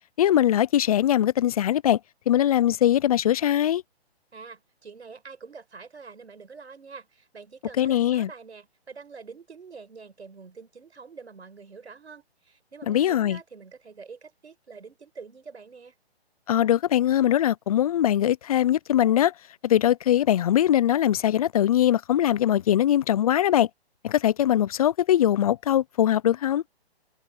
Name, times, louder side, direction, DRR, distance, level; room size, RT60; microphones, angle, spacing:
voice 1, 0.2-2.0 2.3-3.8 7.8-8.3 12.9-13.4 16.5-19.3 19.6-23.7 24.0-26.6, left 11 dB, 35° left, 0.6 m, -21 dB
voice 2, 4.3-15.9, right 5 dB, 90° right, 5.6 m, -45 dB
hypercardioid pair, 150°, 32 cm